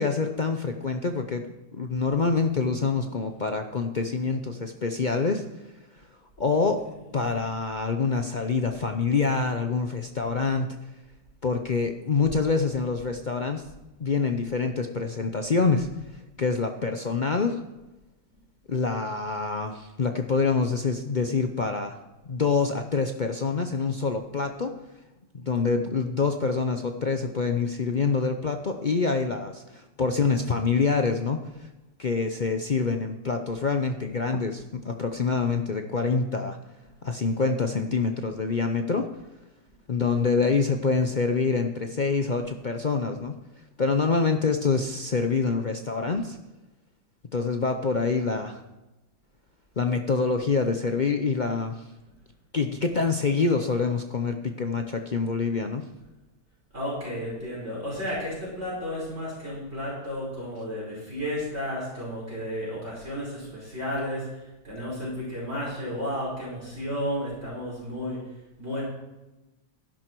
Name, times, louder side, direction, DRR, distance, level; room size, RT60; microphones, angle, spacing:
voice 1, 0.0-1.4 1.7-5.4 6.4-6.8 7.1-10.7 11.4-13.6 14.0-15.9 16.4-17.6 18.7-22.0 22.3-24.7 25.3-31.4 32.0-36.6 37.0-39.1 39.9-43.3 43.8-46.4 47.3-48.6 49.8-51.8 52.5-55.8, left 4 dB, 55° left, 5 dB, 0.5 m, -26 dB
voice 2, 56.7-68.2 68.6-68.8, equal, 35° right, -5 dB, 5.2 m, -32 dB
12.0 x 11.0 x 4.6 m, 1.0 s
omnidirectional pair, 1.8 m